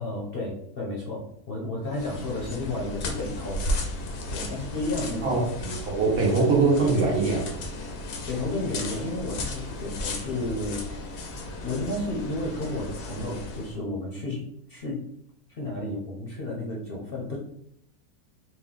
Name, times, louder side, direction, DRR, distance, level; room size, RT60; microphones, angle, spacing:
voice 1, 0.0-3.7 4.3-5.4 8.3-10.9 11.6-15.1 15.5-17.4, left 2 dB, 50° left, -2 dB, 0.7 m, -32 dB
sound 1, 1.8-13.8, left 1 dB, 90° left, 1.3 m, -35 dB
voice 2, 5.2-7.5, right 3 dB, 70° right, -2 dB, 1.5 m, -23 dB
4.2 x 2.3 x 3.6 m, 0.73 s
omnidirectional pair, 1.6 m